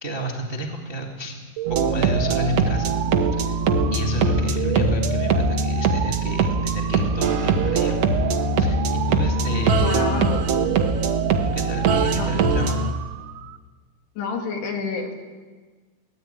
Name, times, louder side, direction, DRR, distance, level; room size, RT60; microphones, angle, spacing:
voice 1, 0.0-1.4 1.7-3.6 3.9-8.0 8.6-10.1 11.4-12.9, right 1 dB, 25° right, 0 dB, 1.3 m, -30 dB
sound 1, 1.6-13.6, right 12 dB, 80° right, 2.6 m, -32 dB
sound 2, 1.7-12.9, right 3 dB, 60° right, 1.7 m, -22 dB
voice 2, 9.8-10.4 12.2-12.3 14.2-15.2, left 4 dB, 75° left, 2 dB, 4.7 m, -28 dB
23.5 x 17.5 x 9.1 m, 1.4 s
omnidirectional pair, 4.8 m